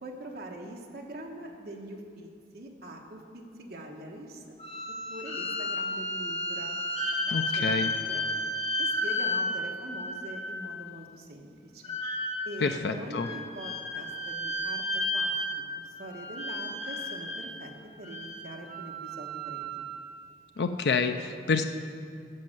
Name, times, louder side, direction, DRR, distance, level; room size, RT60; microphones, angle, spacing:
voice 1, 0.0-2.3 2.5-4.6 5.1-6.7 7.3-8.2 8.8-11.9 12.4-17.7 18.0-19.8, right 1 dB, 60° right, 1 dB, 1.3 m, -43 dB
sound 1, 4.6-10.8 11.8-12.7 13.2-17.5 18.0-20.1, left 1 dB, 35° left, 1.2 m, -32 dB
voice 2, 7.3-7.9 12.6-13.3 20.6-21.6, left 4 dB, 70° left, 7 dB, 0.5 m, -28 dB
13.0 x 5.4 x 7.5 m, 2.2 s
head